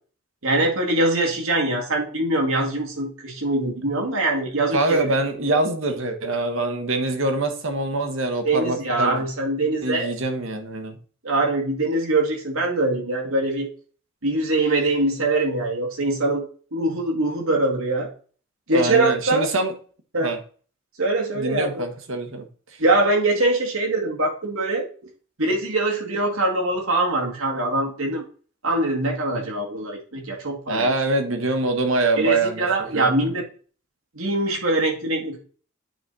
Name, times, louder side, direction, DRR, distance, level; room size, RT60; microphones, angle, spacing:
voice 1, 0.4-5.1 8.4-10.1 11.2-13.7 14.2-16.4 16.7-18.1 18.7-19.5 20.1-20.3 21.0-21.9 22.8-24.8 25.4-28.2 28.6-30.9 32.2-33.4 34.2-35.4, right 2 dB, 85° right, 0 dB, 2.1 m, -23 dB
voice 2, 4.7-9.2 9.8-11.0 18.7-19.7 20.2-20.4 21.3-22.5 30.7-32.6 32.9-33.1, right 2 dB, 70° right, 6 dB, 1.3 m, -24 dB
9.1 x 4.1 x 4.1 m, 0.41 s
head